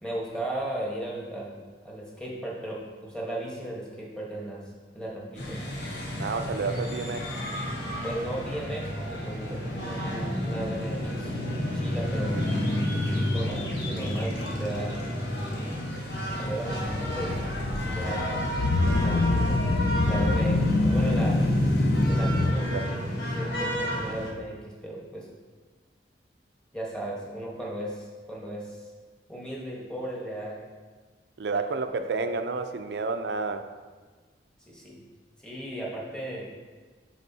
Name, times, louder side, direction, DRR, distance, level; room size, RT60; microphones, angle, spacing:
voice 1, 0.0-4.6 4.9-5.6 8.0-11.3 11.7-12.4 13.1-15.1 15.5-15.8 16.4-17.4 17.8-18.5 19.0-19.6 20.0-21.4 22.1-25.3 26.7-28.9 29.3-30.6 31.5-31.6 32.2-32.3 34.7-35.0 35.4-36.5, right 1 dB, 5° left, -4 dB, 1.2 m, -36 dB
sound 1, 5.4-24.3, equal, 75° left, 1.1 m, -30 dB
voice 2, 6.2-7.3 18.2-18.3 22.7-22.8 31.4-33.6, right 4 dB, 65° right, 8 dB, 0.4 m, -30 dB
sound 2, 16.8-22.5, left 2 dB, 60° left, 0.5 m, -26 dB
9.7 x 4.1 x 2.7 m, 1.4 s
head